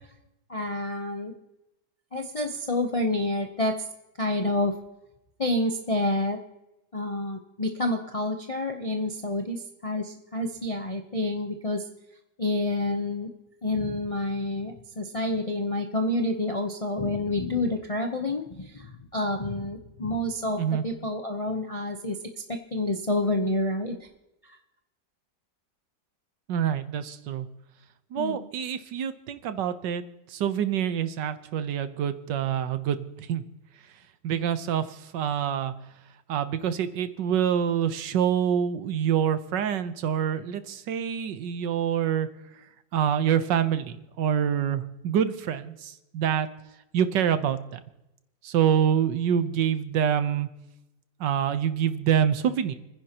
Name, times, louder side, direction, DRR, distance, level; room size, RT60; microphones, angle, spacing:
voice 1, 0.5-1.3 2.1-3.8 4.2-4.7 5.4-6.4 6.9-11.8 12.4-13.3 13.6-22.2 22.5-24.0 24.4-24.6 28.2-28.4, left 1 dB, 40° left, 4 dB, 0.4 m, -28 dB
voice 2, 26.5-27.5 28.1-30.0 30.3-33.4 34.2-35.7 36.3-42.3 42.5-42.6 42.9-46.5 46.9-47.8 48.4-50.5 51.2-52.7, right 9 dB, 80° right, 11 dB, 1.5 m, -26 dB
29.5 x 10.0 x 2.9 m, 0.94 s
omnidirectional pair, 1.9 m